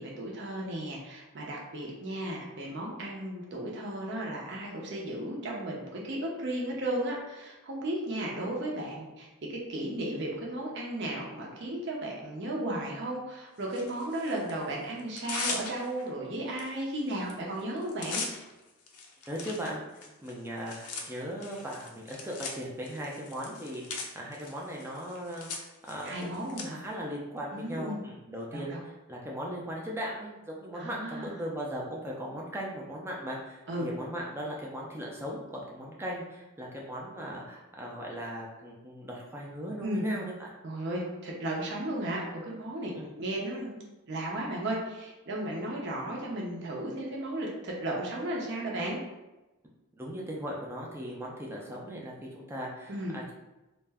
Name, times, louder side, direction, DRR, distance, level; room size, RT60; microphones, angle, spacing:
voice 1, 0.0-18.2 26.0-26.8 27.5-28.0 28.5-28.8 30.7-31.3 33.7-33.9 39.8-40.0 40.6-43.8 44.1-49.0 52.9-53.2, right 1 dB, 50° right, -2 dB, 0.6 m, -35 dB
Tearing, 13.7-14.5 15.0-16.1 16.6-16.7 17.0-17.3 17.6-26.6, left 4 dB, 90° left, 0.5 m, -40 dB
voice 2, 19.3-19.8 20.2-40.5 42.9-43.1 50.0-53.3, equal, 10° right, -3 dB, 0.4 m, -38 dB
2.4 x 2.1 x 3.4 m, 1.1 s
head